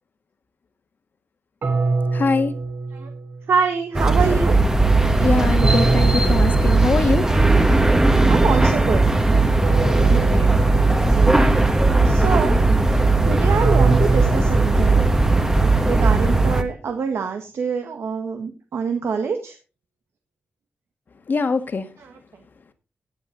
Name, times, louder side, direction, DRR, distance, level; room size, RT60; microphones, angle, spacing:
sound 1, 1.6-3.7 5.6-7.5 9.6-11.5 13.6-15.8, right 3 dB, 65° right, 2.6 m, -26 dB
voice 1, 2.1-2.5 5.2-7.3 10.1-10.6 21.3-21.8, left 4 dB, 50° left, 1.7 m, -23 dB
voice 2, 3.5-4.5 8.3-9.1 12.0-12.6 13.2-15.1 15.8-19.5 22.0-22.2, right 5 dB, 85° right, 1.5 m, -25 dB
sound 2, 3.9-16.6, right 3 dB, 15° right, 1.3 m, -17 dB
17.5 x 8.0 x 3.9 m
wide cardioid pair, 145°, 4 cm